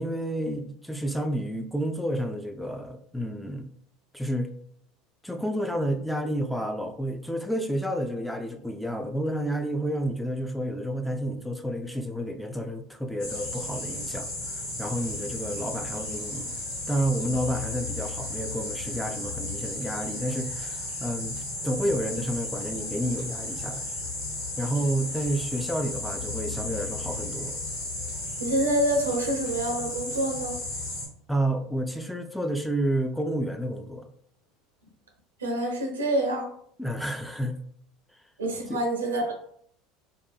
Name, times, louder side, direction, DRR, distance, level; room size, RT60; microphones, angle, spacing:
voice 1, 0.0-3.7 4.1-4.5 5.2-16.5 16.9-21.4 21.6-23.9 24.6-27.6 31.3-34.1 36.8-37.6 38.7-38.8, right 1 dB, ahead, 4 dB, 0.3 m, -30 dB
sound 1, 13.2-31.1, left 2 dB, 70° left, 1.1 m, -34 dB
voice 2, 28.4-30.5 35.4-36.5 38.4-39.3, right 1 dB, 90° right, 2 dB, 0.6 m, -26 dB
2.5 x 2.2 x 2.3 m, 0.63 s
hypercardioid pair, 75°, 0 cm